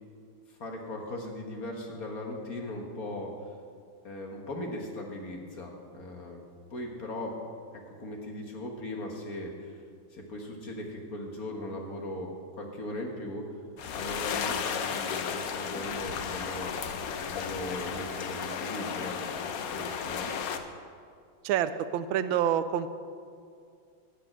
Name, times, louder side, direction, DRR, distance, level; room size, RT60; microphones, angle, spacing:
voice 1, 0.5-3.3 4.0-6.4 6.7-7.3 7.9-9.8 10.1-13.5 13.9-16.7 17.2-20.3, left 1 dB, 45° left, 1 dB, 1.6 m, -38 dB
sound 1, 13.8-20.6, left 7 dB, 65° left, 0.9 m, -34 dB
voice 2, 21.4-22.9, right 10 dB, 75° right, 12 dB, 1.3 m, -27 dB
12.5 x 5.6 x 8.7 m, 2.3 s
omnidirectional pair, 2.3 m